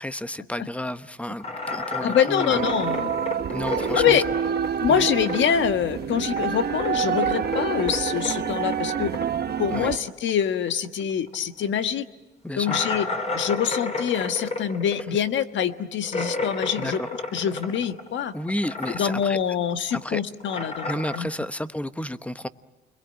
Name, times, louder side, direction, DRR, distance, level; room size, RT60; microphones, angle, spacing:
voice 1, 0.0-2.6 3.5-4.2 4.9-5.1 9.7-9.9 12.4-12.8 16.8-17.1 18.3-19.4 19.9-20.2 20.8-22.5, left 1 dB, 5° left, 12 dB, 1.0 m, -31 dB
sound 1, 1.4-5.7 5.9-11.0 11.3-11.4 11.8-11.9 12.6-18.2 18.5-19.4 19.7-21.2, left 2 dB, 35° left, 5.0 m, -32 dB
voice 2, 2.0-3.1 3.9-4.2 4.8-9.1 9.6-12.0 12.6-13.1 13.3-17.0 17.3-18.3 18.9-21.3, left 8 dB, 70° left, 9 dB, 1.4 m, -25 dB
sound 2, 2.5-10.0, right 8 dB, 55° right, 1.0 m, -27 dB
29.0 x 22.5 x 9.0 m, 1.1 s
cardioid pair, 90°, 20 cm